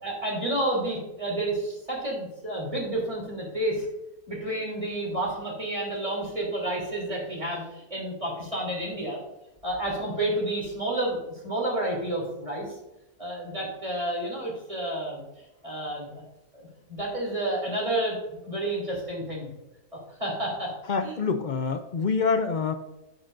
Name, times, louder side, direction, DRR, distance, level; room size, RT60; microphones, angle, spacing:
voice 1, 0.0-3.8 4.3-9.2 9.6-12.7 13.2-15.2 15.6-16.2 16.5-19.5 20.2-20.7 21.0-21.1, right 1 dB, 20° right, -3 dB, 3.2 m, -30 dB
voice 2, 20.9-22.7, left 5 dB, 60° left, 8 dB, 0.4 m, -26 dB
11.0 x 8.1 x 2.6 m, 0.96 s
omnidirectional pair, 1.6 m